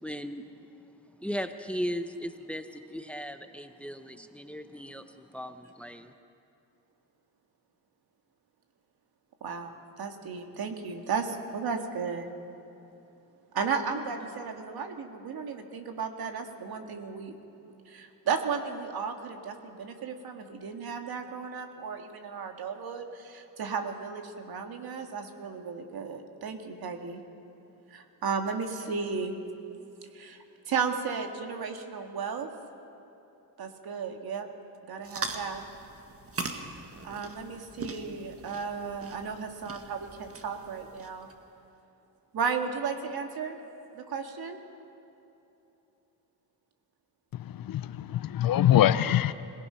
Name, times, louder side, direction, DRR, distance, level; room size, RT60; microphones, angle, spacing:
voice 1, 0.0-0.4 1.2-6.1, equal, 5° left, 8 dB, 0.9 m, -37 dB
voice 2, 9.4-12.3 13.5-17.4 17.9-27.2 27.9-29.4 30.1-32.5 33.6-34.5 34.9-35.6 37.0-41.3 42.3-43.6 43.9-44.6, right 5 dB, 65° right, 4 dB, 2.1 m, -34 dB
sound 1, 35.0-41.3, right 3 dB, 35° right, 1.7 m, -41 dB
voice 3, 47.3-49.3, left 11 dB, 60° left, 15 dB, 0.7 m, -24 dB
25.5 x 18.0 x 5.7 m, 2.9 s
cardioid pair, 95°, 40 cm